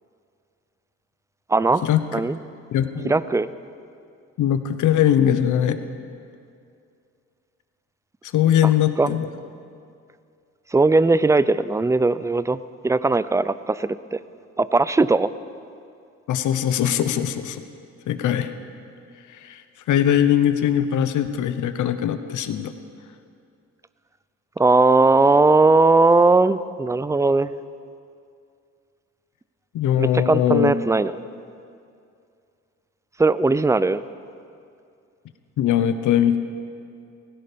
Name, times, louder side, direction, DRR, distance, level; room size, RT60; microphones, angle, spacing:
voice 1, 1.5-2.4 3.0-3.5 8.6-8.7 9.0-9.1 10.7-14.2 14.6-15.3 24.6-27.5 30.0-31.1 33.2-34.0, right 3 dB, 10° right, 16 dB, 0.4 m, -19 dB
voice 2, 2.7-3.2 4.4-5.8 8.3-9.3 16.3-17.6 18.1-18.5 19.4-19.6 19.9-22.7 29.7-30.7 35.6-36.4, left 10 dB, 80° left, 10 dB, 1.0 m, -20 dB
17.0 x 16.0 x 5.2 m, 2.4 s
cardioid pair, 90°, 30 cm